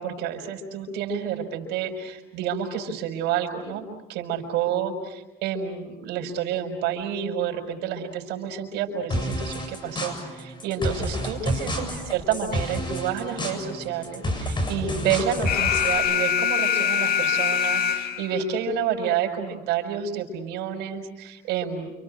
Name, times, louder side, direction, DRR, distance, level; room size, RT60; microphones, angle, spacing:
voice 1, 0.0-21.9, right 8 dB, 90° right, 4 dB, 5.7 m, -29 dB
sound 1, 9.1-16.0, equal, 30° left, 7.4 m, -30 dB
Alarm, 15.5-18.4, left 8 dB, 60° left, 2.2 m, -23 dB
29.5 x 28.0 x 6.5 m, 0.99 s
cardioid pair, 110°, 17 cm